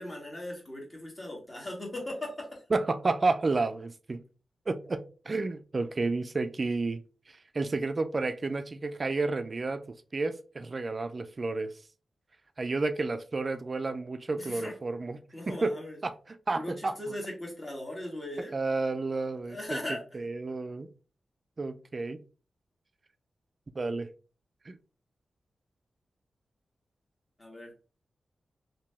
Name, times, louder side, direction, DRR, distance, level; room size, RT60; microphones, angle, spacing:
voice 1, 0.0-2.6 14.4-14.7 15.3-16.0 16.6-18.5 19.5-20.0 27.4-27.7, left 1 dB, 25° left, 1.5 m, -38 dB
voice 2, 2.7-4.2 4.7-7.0 7.3-9.8 10.1-11.7 12.6-15.8 16.0-17.0 18.5-19.8 20.1-20.9 21.6-22.2 23.8-24.1 24.7-24.8, right 3 dB, 40° right, 0.3 m, -31 dB
2.9 x 2.7 x 3.3 m
wide cardioid pair, 85°, 0 cm